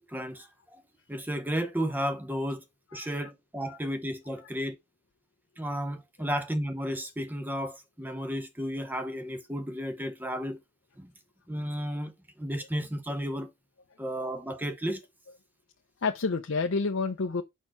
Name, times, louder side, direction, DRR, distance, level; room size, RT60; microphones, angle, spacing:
voice 1, 0.1-0.8 1.1-2.6 2.9-4.8 5.6-10.6 11.0-11.1 11.5-13.5 14.0-15.0, equal, 10° right, 0.7 m, -33 dB
voice 2, 2.9-3.3 3.6-3.8 4.4-4.5 16.0-17.4, left 4 dB, 70° left, 0.6 m, -30 dB
4.5 x 4.5 x 5.9 m
head